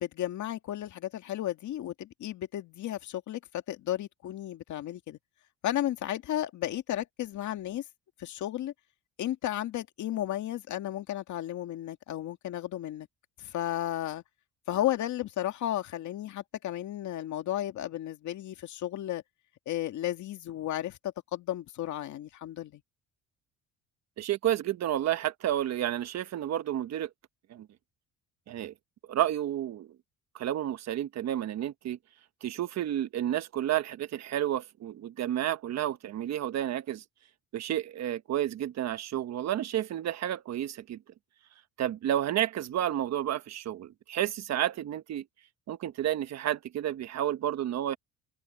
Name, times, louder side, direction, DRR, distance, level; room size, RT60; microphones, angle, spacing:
voice 1, 0.0-5.2 5.6-7.8 8.2-8.7 9.2-13.1 13.4-14.2 14.7-19.2 19.7-22.8, left 13 dB, 65° left, 2.1 m, -33 dB
voice 2, 24.2-27.1 27.5-27.7 28.5-28.7 29.1-29.9 30.3-32.0 32.4-37.0 37.5-41.0 41.8-45.2 45.7-48.0, right 12 dB, 55° right, 1.2 m, -31 dB
cardioid pair, 120°, 32 cm